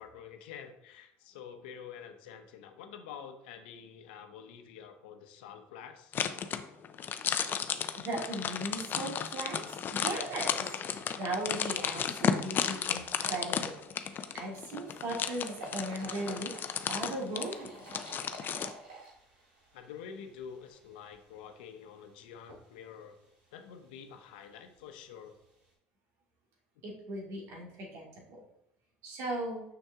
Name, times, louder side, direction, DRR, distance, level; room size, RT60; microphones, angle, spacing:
voice 1, 0.0-6.2 19.7-23.2 23.5-25.4 26.8-26.9, left 7 dB, 80° left, 7 dB, 0.9 m, -48 dB
sound 1, 6.1-18.7, left 8 dB, 45° left, 0.6 m, -34 dB
voice 2, 8.0-13.7 14.1-16.5 16.9-17.7 26.8-28.2 29.0-29.6, right 1 dB, 65° right, -2 dB, 2.6 m, -38 dB
sound 2, 11.7-11.8 12.2-12.3 12.9-25.7, right 2 dB, 85° right, 2.7 m, -52 dB
6.3 x 5.9 x 3.6 m, 0.84 s
hypercardioid pair, 75°, 5 cm